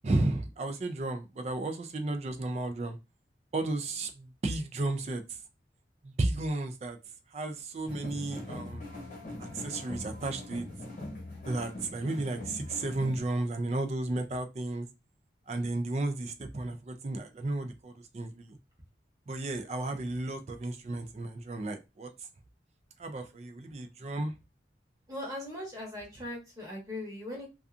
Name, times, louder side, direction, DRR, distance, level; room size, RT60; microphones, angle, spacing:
voice 1, 0.0-3.0 3.5-5.2 6.2-7.0 7.3-8.8 9.5-10.7 11.5-14.9 15.5-18.6 19.3-22.1 23.0-24.3, right 2 dB, 35° right, 0.3 m, -33 dB
sound 1, 7.9-13.2, left 1 dB, 45° left, 1.1 m, -42 dB
voice 2, 25.1-27.5, left 1 dB, 20° right, 1.0 m, -39 dB
2.6 x 2.4 x 2.4 m
head